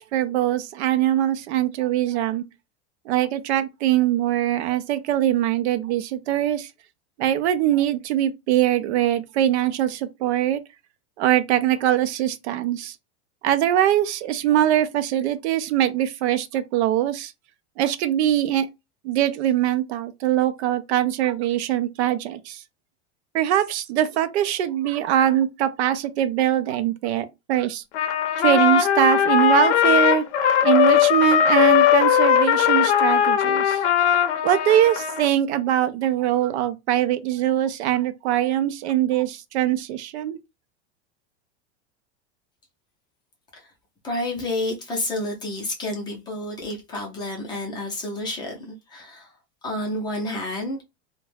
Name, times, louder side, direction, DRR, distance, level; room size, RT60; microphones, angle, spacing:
voice 1, 0.1-2.4 3.1-6.7 7.2-10.6 11.2-13.0 13.4-17.3 17.8-18.7 19.0-22.6 23.3-27.8 28.4-30.2 30.6-33.8 34.4-40.4, right 12 dB, 75° right, 0.5 m, -22 dB
Trumpet, 27.9-35.3, left 9 dB, 85° left, 0.6 m, -19 dB
voice 2, 44.0-49.3 49.6-50.8, left 1 dB, 15° left, 0.5 m, -30 dB
2.3 x 2.1 x 3.2 m
supercardioid pair, 160°, 33 cm